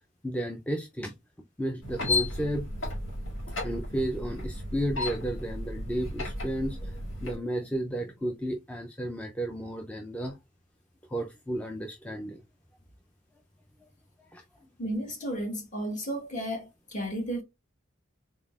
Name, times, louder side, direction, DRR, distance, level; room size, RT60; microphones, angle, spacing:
voice 1, 0.2-1.1 1.6-2.7 3.6-10.4 11.1-12.4 13.8-13.9 14.3-14.4, right 1 dB, 5° left, 0.4 m, -33 dB
sound 1, 1.8-7.4, left 2 dB, 85° left, 1.6 m, -34 dB
voice 2, 14.8-17.4, right 1 dB, 40° left, 1.4 m, -33 dB
4.0 x 3.6 x 2.3 m
head